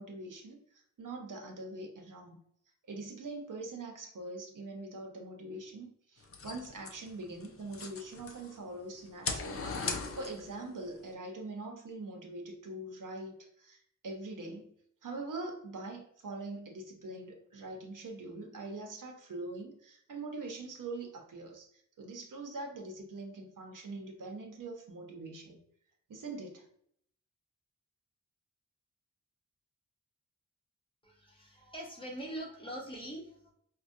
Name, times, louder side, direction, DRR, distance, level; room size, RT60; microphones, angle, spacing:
voice 1, 0.0-2.4 2.9-14.7 15.0-25.6 26.1-26.7, right 2 dB, 70° right, 1 dB, 0.8 m, -43 dB
sound 1, 6.2-8.6 9.0-10.6, left 4 dB, 45° left, 0.5 m, -39 dB
voice 2, 31.0-33.5, right 1 dB, 15° left, -3 dB, 0.9 m, -43 dB
4.6 x 2.2 x 2.6 m, 0.66 s
wide cardioid pair, 120°, 33 cm